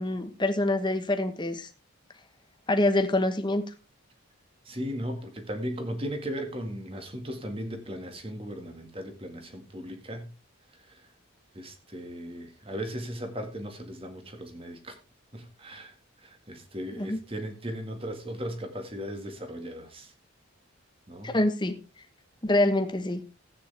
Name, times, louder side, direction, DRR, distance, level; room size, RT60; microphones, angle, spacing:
voice 1, 0.0-1.7 2.7-3.6 17.0-17.2 21.2-21.8 22.4-23.2, left 1 dB, 20° left, 1.1 m, -25 dB
voice 2, 4.7-10.3 10.8-11.1 11.5-15.0 15.3-20.1 21.1-21.4, equal, 25° right, 1.8 m, -37 dB
14.5 x 9.1 x 3.4 m
head